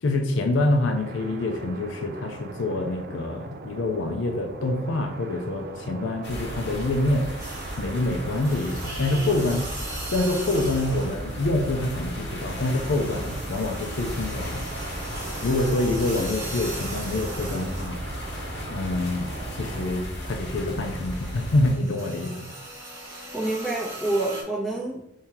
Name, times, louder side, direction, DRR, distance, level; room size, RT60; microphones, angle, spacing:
voice 1, 0.0-7.3 7.8-9.7 10.1-14.7 15.4-18.0 18.7-22.5, left 2 dB, 80° left, 5 dB, 0.5 m, -26 dB
sound 1, 0.9-20.1, right 3 dB, 50° right, 0.3 m, -41 dB
sound 2, 6.2-21.7, equal, 60° left, 1.1 m, -35 dB
sound 3, 7.4-8.0 8.4-11.3 11.6-18.4 18.7-24.4, right 1 dB, 15° right, 1.2 m, -39 dB
voice 2, 23.1-25.0, right 2 dB, ahead, -7 dB, 1.4 m, -28 dB
3.6 x 2.8 x 4.3 m, 0.80 s
head